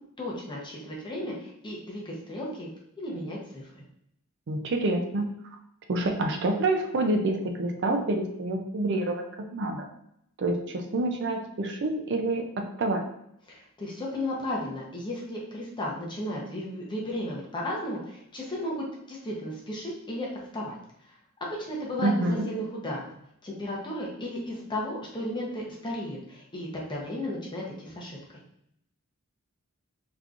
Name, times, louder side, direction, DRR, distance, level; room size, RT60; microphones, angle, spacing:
voice 1, 0.2-2.7 3.0-3.8 13.5-20.3 20.5-20.8 21.4-23.1 23.4-28.4, left 1 dB, 20° left, -4 dB, 0.8 m, -34 dB
voice 2, 4.5-5.3 5.9-9.2 9.5-9.9 10.4-12.4 12.8-13.0 22.0-22.5, right 2 dB, 55° right, 4 dB, 0.5 m, -27 dB
3.7 x 2.9 x 2.4 m, 0.73 s
head